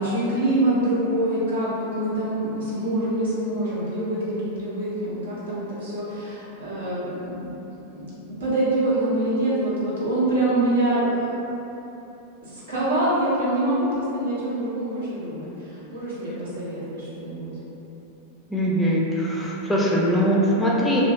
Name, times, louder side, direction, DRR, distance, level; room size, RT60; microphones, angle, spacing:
voice 1, 0.0-7.5 7.9-11.3 12.4-17.5, right 1 dB, 60° right, -9 dB, 0.9 m, -25 dB
voice 2, 18.5-21.0, equal, 5° left, -5 dB, 0.5 m, -21 dB
3.0 x 2.2 x 2.8 m, 3.0 s
figure-of-eight pair, 90°, 0 cm